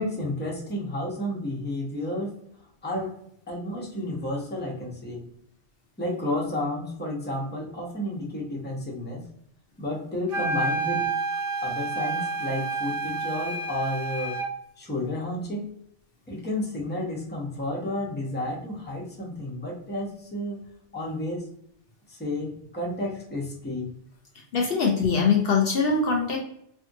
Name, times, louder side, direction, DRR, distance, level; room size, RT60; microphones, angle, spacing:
voice 1, 0.0-2.4 2.8-3.2 3.5-5.2 6.0-9.3 9.8-11.1 11.6-14.4 14.8-15.7 16.3-21.5 22.1-23.9, left 1 dB, 10° left, -3 dB, 0.6 m, -31 dB
sound 1, 10.3-14.6, right 3 dB, 60° right, 0.7 m, -29 dB
voice 2, 24.5-26.4, left 5 dB, 65° left, 0 dB, 0.7 m, -22 dB
2.6 x 2.5 x 2.5 m, 0.70 s
omnidirectional pair, 1.2 m